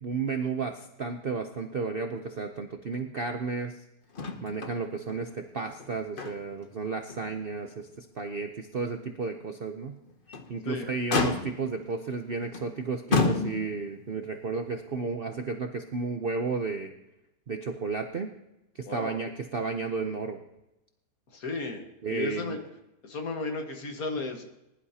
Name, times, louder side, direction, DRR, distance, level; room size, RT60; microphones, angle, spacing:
voice 1, 0.0-3.7 4.4-10.0 10.5-16.9 17.5-18.3 18.7-20.4 22.0-22.6, right 4 dB, 50° right, 5 dB, 0.6 m, -33 dB
Motor vehicle (road), 4.1-4.8 5.1-5.2 5.7-6.7 7.1-7.2 7.8-7.9 10.1-10.5 11.1-11.8 12.5-12.7 13.1-13.9 15.0-15.1, left 3 dB, 40° left, 0.9 m, -29 dB
voice 2, 18.8-19.2 21.3-22.6 23.0-24.4, left 3 dB, 60° left, 4 dB, 1.9 m, -34 dB
20.0 x 11.0 x 2.8 m, 0.91 s
omnidirectional pair, 1.8 m